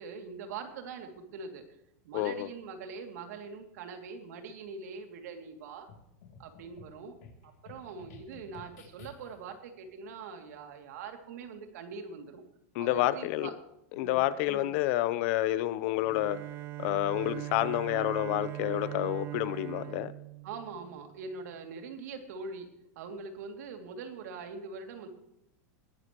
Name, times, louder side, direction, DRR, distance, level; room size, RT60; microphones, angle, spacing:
voice 1, 0.0-1.7 2.0-5.9 6.4-7.1 7.4-12.4 12.8-13.5 13.9-14.2 14.5-14.7 20.4-22.7 22.9-25.1, right 5 dB, 75° right, 5 dB, 2.8 m, -43 dB
voice 2, 2.1-2.5 12.7-13.5 14.0-16.4 16.8-20.1, left 15 dB, 50° left, 15 dB, 0.8 m, -29 dB
sound 1, 5.9-9.5, left 5 dB, 70° left, 3.2 m, -53 dB
Bowed string instrument, 16.0-21.2, right 17 dB, 25° right, 0.4 m, -40 dB
21.0 x 11.5 x 3.1 m, 0.80 s
supercardioid pair, 160°, 9 cm